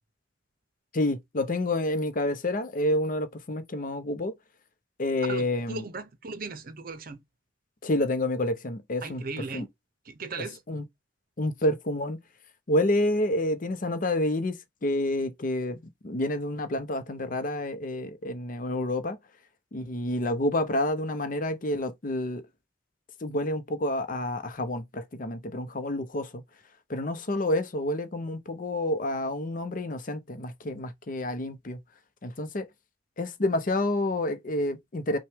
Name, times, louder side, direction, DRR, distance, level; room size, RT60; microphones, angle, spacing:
voice 1, 0.9-4.3 5.0-5.8 7.8-9.2 9.5-9.7 10.7-10.8 11.4-12.2 12.7-14.6 14.8-15.8 16.0-19.2 19.7-22.4 23.2-26.4 26.9-31.8 32.2-32.6 33.2-35.2, left 1 dB, 45° left, 0.7 m, -28 dB
voice 2, 5.3-7.2 9.0-9.7 10.0-10.6, right 4 dB, 50° right, 0.7 m, -37 dB
5.7 x 2.3 x 3.4 m
head